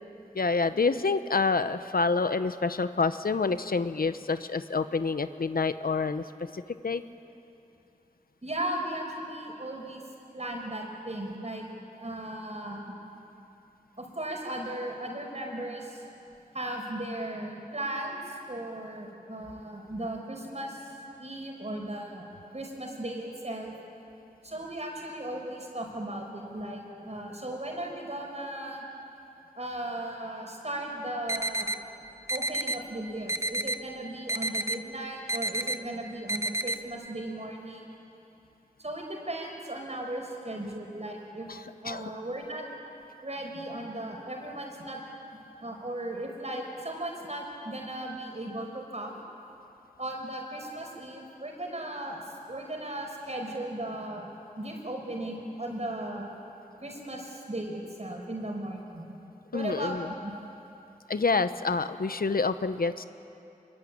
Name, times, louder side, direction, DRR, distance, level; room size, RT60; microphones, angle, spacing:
voice 1, 0.3-7.0 41.5-42.0 59.5-60.1 61.1-63.0, left 4 dB, 85° left, 11 dB, 0.9 m, -28 dB
voice 2, 8.4-10.0 10.3-11.7 12.0-12.9 14.0-16.0 16.5-20.9 21.2-22.3 22.5-23.7 24.4-28.9 29.6-31.7 32.3-38.0 38.8-41.5 41.8-42.6 43.2-45.0 45.6-49.2 50.0-56.3 56.8-59.1 59.5-60.3, right 1 dB, 50° right, 1 dB, 5.5 m, -36 dB
sound 1, 31.3-31.8 32.3-32.8 33.3-33.8 34.3-34.8 35.3-35.8 36.3-36.8, right 1 dB, 20° right, 1.0 m, -29 dB
24.5 x 23.0 x 8.8 m, 2.8 s
wide cardioid pair, 50°, 15 cm